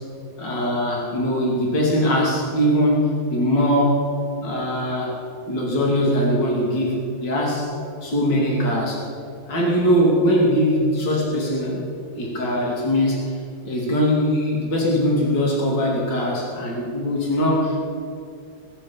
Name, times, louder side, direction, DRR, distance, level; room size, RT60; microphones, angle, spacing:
voice 1, 0.4-4.1 4.4-5.1 5.5-7.7 8.0-9.0 9.5-11.8 12.1-13.4 13.6-17.8, equal, 55° left, -3 dB, 3.3 m, -21 dB
21.5 x 7.5 x 7.3 m, 2.4 s
omnidirectional pair, 2.4 m